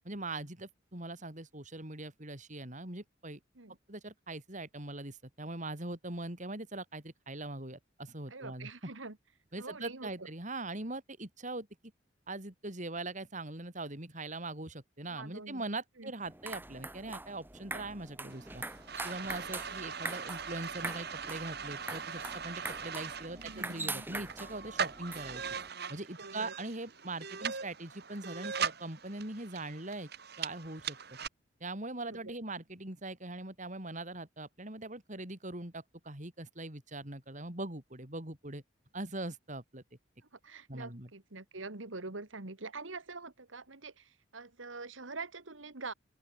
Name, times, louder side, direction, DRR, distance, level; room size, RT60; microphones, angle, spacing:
voice 1, 0.1-3.4 3.9-8.7 9.5-11.7 12.3-18.6 19.0-25.4 25.9-30.1 30.4-31.0 31.6-38.6 38.9-39.8 40.7-41.1, right 2 dB, 40° right, 4.3 m, -41 dB
voice 2, 8.3-9.2 9.6-10.3 15.1-16.1 19.9-20.0 23.3-24.1 26.2-26.5 32.0-32.3 40.3-45.9, right 3 dB, 90° right, 2.2 m, -45 dB
sound 1, 16.2-25.7, right 2 dB, 10° right, 2.5 m, -43 dB
sound 2, 18.3-31.3, right 6 dB, 55° right, 3.4 m, -40 dB
open air
head